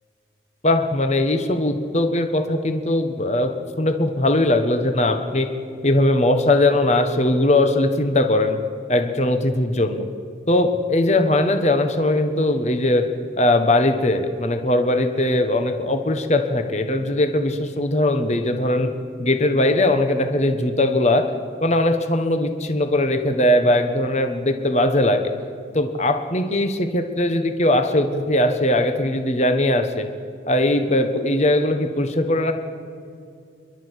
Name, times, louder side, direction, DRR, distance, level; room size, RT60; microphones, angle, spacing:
voice 1, 0.6-3.5 3.8-5.5 5.8-8.6 8.9-10.0 10.5-13.0 13.4-18.9 19.2-21.3 21.6-25.2 25.7-30.1 30.5-32.5, left 1 dB, 35° left, 6 dB, 1.2 m, -20 dB
28.0 x 12.0 x 8.2 m, 2.4 s
head